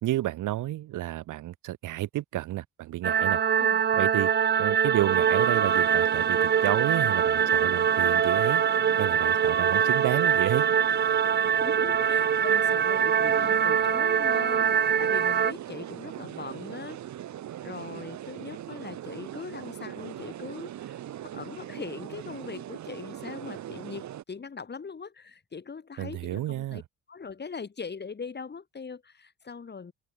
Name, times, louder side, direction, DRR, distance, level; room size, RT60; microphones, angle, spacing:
voice 1, 0.0-3.4 4.0-4.3 4.6-8.6 9.0-10.7 26.0-26.8, right 15 dB, 85° right, 3.0 m, -30 dB
sound 1, 3.0-15.5, right 8 dB, 35° right, 0.7 m, -23 dB
sound 2, 5.1-24.2, right 12 dB, 70° right, 2.0 m, -40 dB
voice 2, 11.6-17.0 17.6-26.8 27.1-29.9, left 5 dB, 35° left, 3.2 m, -41 dB
cardioid pair, 90°, 30 cm